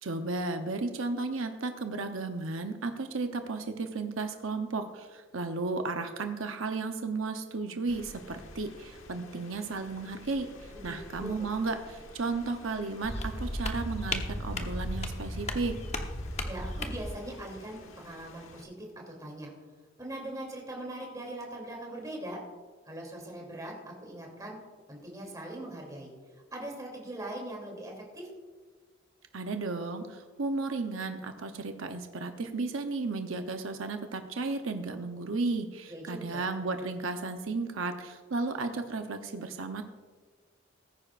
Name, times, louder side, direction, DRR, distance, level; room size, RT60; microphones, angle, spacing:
voice 1, 0.0-15.8 29.3-39.8, right 3 dB, 85° right, 6 dB, 0.8 m, -34 dB
Rain, 7.9-18.6, left 2 dB, 85° left, 1.3 m, -51 dB
voice 2, 10.7-11.5 16.4-19.5 20.0-22.4 22.8-24.6 24.9-26.1 26.5-28.3 35.9-36.4, right 1 dB, 20° right, -1 dB, 2.9 m, -41 dB
sound 1, 13.0-17.1, left 1 dB, 30° left, 1.0 m, -35 dB
19.0 x 10.0 x 2.5 m, 1.4 s
head